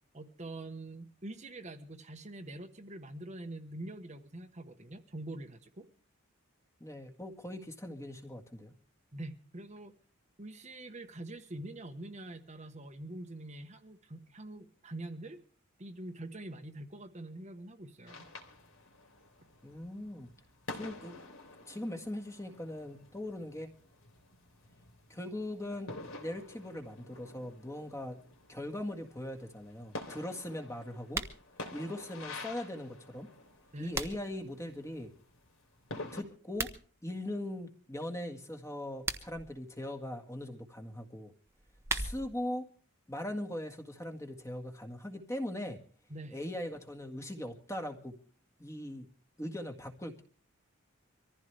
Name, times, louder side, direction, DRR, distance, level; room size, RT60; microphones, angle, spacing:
voice 1, 0.1-5.9 9.1-9.9 10.4-15.4 15.8-18.3 33.7-33.9 46.1-46.4, right 1 dB, 35° right, 5 dB, 1.2 m, -45 dB
voice 2, 6.8-8.7 19.6-20.3 20.8-21.2 21.7-23.7 25.1-25.9 26.2-28.2 28.5-31.2 31.7-33.3 33.8-35.1 36.1-36.7 37.0-41.3 41.9-42.6 43.1-45.8 46.3-48.1 48.6-49.1 49.4-50.2, left 1 dB, 15° left, 5 dB, 1.8 m, -40 dB
sound 1, 18.1-36.2, left 2 dB, 70° left, 3.5 m, -49 dB
sound 2, 31.0-31.4 33.4-34.4 36.4-36.8 38.8-39.5 41.5-42.4, right 3 dB, 15° right, 1.1 m, -38 dB
24.5 x 15.0 x 3.4 m, 0.43 s
head